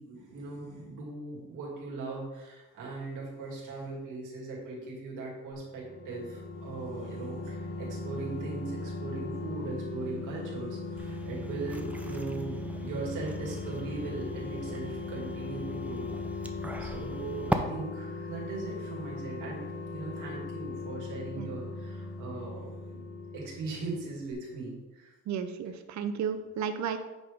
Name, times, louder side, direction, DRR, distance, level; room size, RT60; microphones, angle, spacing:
voice 1, 0.0-16.1 16.8-23.0 23.3-25.1, right 3 dB, 85° right, -3 dB, 2.4 m, -39 dB
sound 1, 5.7-24.0 24.3-24.4, left 3 dB, 50° left, 1.5 m, -39 dB
sound 2, 11.0-17.6, right 2 dB, 5° right, 0.6 m, -39 dB
voice 2, 25.3-27.0, right 7 dB, 65° right, 9 dB, 0.7 m, -33 dB
8.2 x 3.5 x 5.1 m, 1.1 s
cardioid pair, 90°, 30 cm